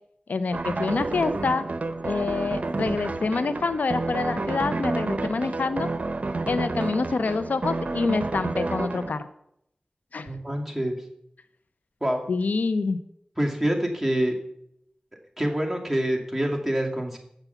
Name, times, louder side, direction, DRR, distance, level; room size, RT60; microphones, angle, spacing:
voice 1, 0.3-1.7 2.0-5.9 6.5-9.3 10.1-10.3 12.3-13.0, left 4 dB, 90° left, 12 dB, 0.5 m, -26 dB
sound 1, 0.5-9.1, right 3 dB, 60° right, 0.8 m, -30 dB
voice 2, 10.3-11.0 12.0-12.2 13.4-14.4 15.4-17.2, right 1 dB, 5° right, 0 dB, 2.4 m, -26 dB
8.2 x 6.9 x 6.9 m, 0.75 s
wide cardioid pair, 55°, 3 cm